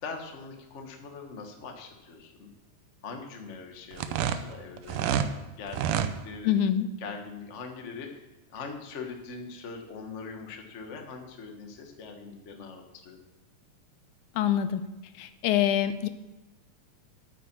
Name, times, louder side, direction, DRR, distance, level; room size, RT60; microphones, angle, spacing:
voice 1, 0.0-2.5 3.0-6.5 7.0-13.2, left 4 dB, 50° left, 3 dB, 0.8 m, -42 dB
sound 1, 3.9-5.3 5.7-6.1, right 9 dB, 85° right, 2.3 m, -28 dB
voice 2, 6.4-6.9 14.4-14.8 15.2-16.1, left 10 dB, 80° left, 11 dB, 2.0 m, -25 dB
9.3 x 9.1 x 7.3 m, 1.1 s
omnidirectional pair, 3.6 m